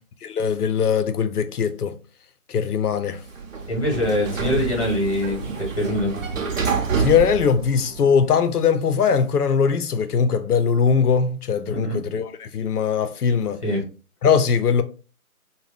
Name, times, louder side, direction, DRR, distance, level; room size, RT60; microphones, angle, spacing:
voice 1, 0.2-1.9 2.5-3.2 7.0-13.6 14.2-14.8, left 6 dB, 90° left, 0.6 m, -20 dB
Sliding door, 3.1-8.3, right 6 dB, 60° right, 0.8 m, -28 dB
voice 2, 3.7-6.1 11.6-12.0 13.6-13.8, left 1 dB, 25° left, 0.9 m, -24 dB
2.7 x 2.2 x 3.3 m
figure-of-eight pair, 155°, 44 cm